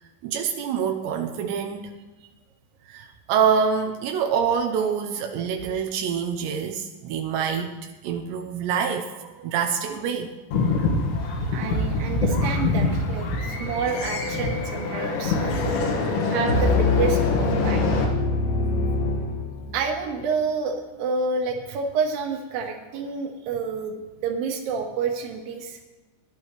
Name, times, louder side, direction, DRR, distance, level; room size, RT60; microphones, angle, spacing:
voice 1, 0.2-1.8 2.9-7.7 8.0-10.3, right 7 dB, 85° right, 4 dB, 2.9 m, -26 dB
sound 1, 10.5-18.0, left 3 dB, 80° left, 3.8 m, -25 dB
voice 2, 11.3-15.8 16.3-17.8 19.7-25.8, right 5 dB, 65° right, 2 dB, 2.9 m, -29 dB
sound 2, 16.5-19.9, left 3 dB, 65° left, 2.5 m, -24 dB
17.5 x 11.5 x 3.2 m, 1.2 s
omnidirectional pair, 5.0 m